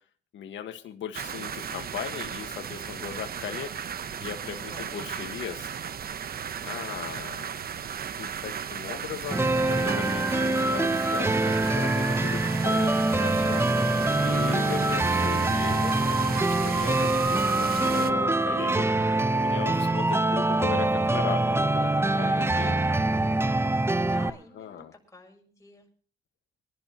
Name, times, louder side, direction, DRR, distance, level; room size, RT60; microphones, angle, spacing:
voice 1, 0.3-3.7 4.2-5.7 6.6-7.5 8.2-13.6 14.2-16.0 16.3-18.9 19.3-21.9 22.2-22.8 24.5-24.9, left 9 dB, 70° left, 5 dB, 1.7 m, -38 dB
sound 1, 1.1-18.1, right 7 dB, 50° right, 1.0 m, -35 dB
voice 2, 4.6-5.5 6.8-7.5 14.0-14.8 22.2-22.9 24.0-25.9, left 2 dB, 15° left, 1 dB, 7.0 m, -50 dB
sound 2, 9.3-24.3, right 2 dB, 10° right, 0.7 m, -24 dB
25.0 x 11.5 x 3.1 m, 0.43 s
cardioid pair, 90°, 20 cm